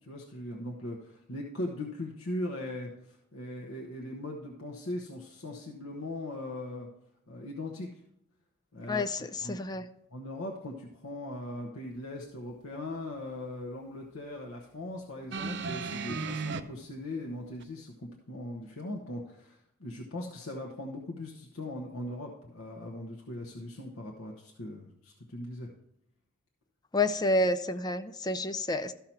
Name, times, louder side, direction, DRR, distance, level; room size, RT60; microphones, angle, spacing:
voice 1, 0.0-6.9 7.3-7.9 8.7-9.8 10.1-25.7, left 1 dB, 85° left, -1 dB, 1.1 m, -39 dB
voice 2, 8.9-9.8 26.9-28.9, left 2 dB, 20° left, 9 dB, 0.4 m, -29 dB
sound 1, 15.3-16.6 17.6-17.7, right 4 dB, 55° right, 0.6 m, -34 dB
13.5 x 5.7 x 4.5 m, 0.79 s
head